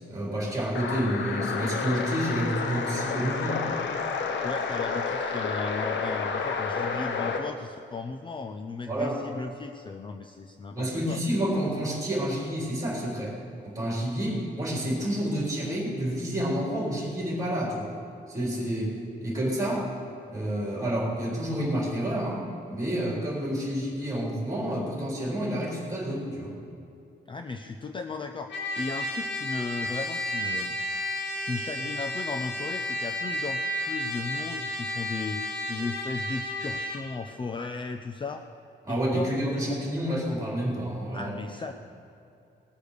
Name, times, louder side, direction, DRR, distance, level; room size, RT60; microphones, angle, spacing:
voice 1, 0.1-3.8 8.9-9.2 10.7-13.4 13.6-18.0 18.3-19.9 20.3-26.6 38.8-41.3, right 1 dB, 15° right, -3 dB, 3.6 m, -29 dB
sound 1, 0.7-7.5, left 5 dB, 75° left, 1.0 m, -30 dB
voice 2, 4.4-11.2 27.3-30.8 31.4-35.4 35.7-38.4 38.9-39.3 41.1-41.7, left 4 dB, 25° left, 6 dB, 0.5 m, -36 dB
Trumpet, 28.5-37.0, left 1 dB, 90° left, 3.6 m, -32 dB
19.5 x 6.8 x 6.6 m, 2.6 s
wide cardioid pair, 165°, 19 cm